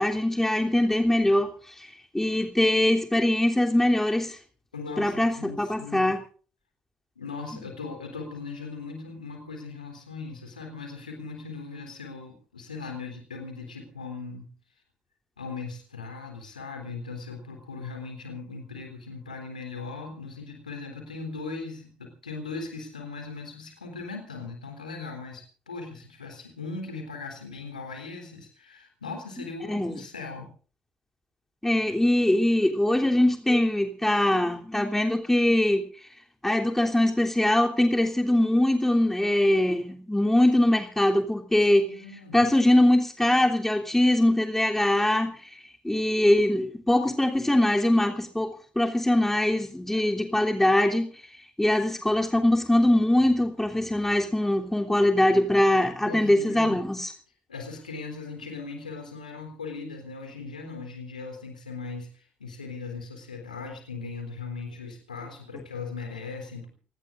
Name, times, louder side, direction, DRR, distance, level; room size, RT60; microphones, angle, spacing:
voice 1, 0.0-1.5 1.8-1.9 2.1-4.4 5.0-6.2 29.7-30.0 31.6-35.8 36.4-41.9 42.3-45.4 45.8-51.1 51.6-57.1, left 1 dB, 5° left, 2 dB, 3.2 m, -22 dB
voice 2, 4.7-6.1 7.2-14.5 15.4-30.5 41.6-42.4 56.1-56.8 57.5-66.7, left 4 dB, 85° left, 4 dB, 3.7 m, -39 dB
28.5 x 18.5 x 2.6 m, 0.40 s
figure-of-eight pair, 50°, 4 cm